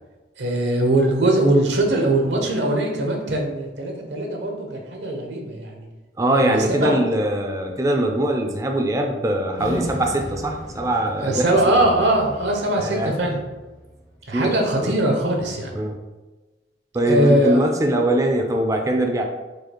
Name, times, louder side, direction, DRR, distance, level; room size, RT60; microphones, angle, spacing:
voice 1, 0.4-5.9 6.3-6.9 11.2-13.4 14.3-15.7 17.1-17.6, right 1 dB, 75° right, 1 dB, 0.9 m, -21 dB
voice 2, 6.2-11.5 12.8-13.2 14.3-14.5 14.8-14.9 15.7-16.0 16.9-19.2, right 1 dB, 20° right, 3 dB, 0.4 m, -22 dB
sound 1, 9.6-14.1, equal, 70° left, 1.3 m, -35 dB
4.9 x 2.4 x 4.4 m, 1.2 s
head